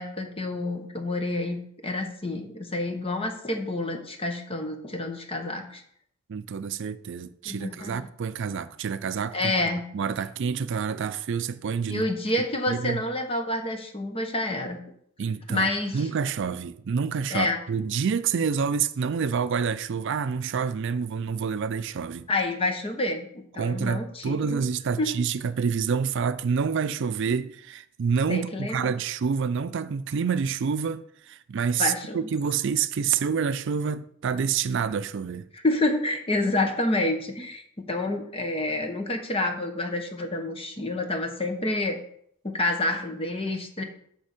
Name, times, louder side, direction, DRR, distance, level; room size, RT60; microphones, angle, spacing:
voice 1, 0.0-5.8 7.4-8.1 9.3-9.9 11.9-14.8 15.5-16.0 17.3-17.6 22.3-24.6 25.0-25.1 28.3-28.9 31.8-32.3 35.5-37.6 37.9-42.0 42.4-43.8, left 2 dB, 30° left, 1.1 m, -28 dB
voice 2, 6.3-9.5 9.9-12.1 12.7-13.0 15.2-22.3 23.6-35.5, right 6 dB, 60° right, 0.4 m, -28 dB
9.8 x 3.5 x 6.6 m
head